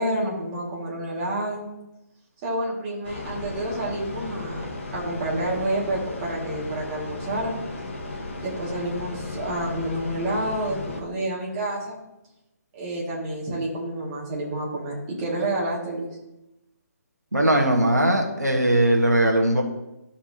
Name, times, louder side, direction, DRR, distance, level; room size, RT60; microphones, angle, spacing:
voice 1, 0.0-1.7 2.4-4.6 4.9-7.6 8.4-12.0 12.7-16.1, right 1 dB, 25° right, -4 dB, 2.3 m, -29 dB
sound 1, 3.0-11.0, left 2 dB, 50° left, 1.5 m, -35 dB
voice 2, 17.3-19.6, right 1 dB, 80° right, 2 dB, 1.5 m, -19 dB
12.0 x 5.9 x 2.9 m, 0.91 s
figure-of-eight pair, 145°, 9 cm